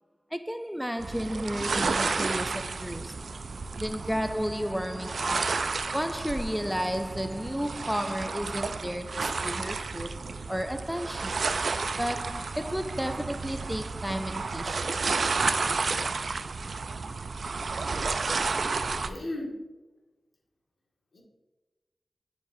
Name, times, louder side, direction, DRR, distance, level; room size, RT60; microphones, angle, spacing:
voice 1, 0.3-3.2 3.8-11.5 12.0-14.9, equal, 5° right, 0.4 m, -33 dB
sound 1, 1.0-19.1, right 4 dB, 80° right, 0.3 m, -31 dB
voice 2, 15.9-16.6 17.6-17.7 19.1-19.6 21.1-21.2, left 1 dB, 80° left, 1.7 m, -39 dB
10.0 x 4.6 x 2.6 m
cardioid pair, 40°, 0 cm